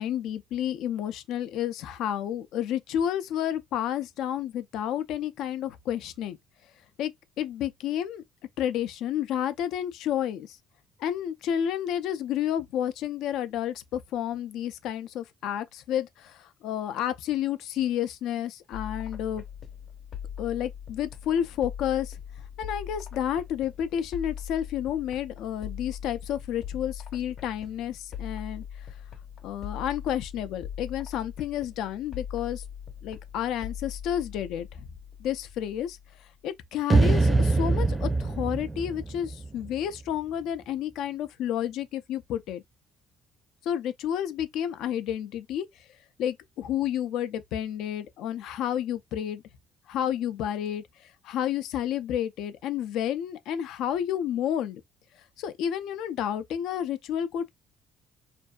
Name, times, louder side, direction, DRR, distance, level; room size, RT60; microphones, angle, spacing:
voice 1, 0.0-6.4 7.0-7.1 7.4-8.2 8.6-10.6 11.0-19.4 20.4-22.2 22.6-28.6 29.4-32.6 33.0-34.9 35.2-36.0 36.4-42.6 43.7-45.7 46.2-49.4 49.9-54.8 55.4-57.5, left 10 dB, 75° left, 0.4 m, -30 dB
sound 1, 18.7-36.3, left 8 dB, 55° left, 0.8 m, -41 dB
sound 2, 36.9-40.1, right 3 dB, 20° right, 0.5 m, -24 dB
2.6 x 2.3 x 2.2 m
supercardioid pair, 80°, 0 cm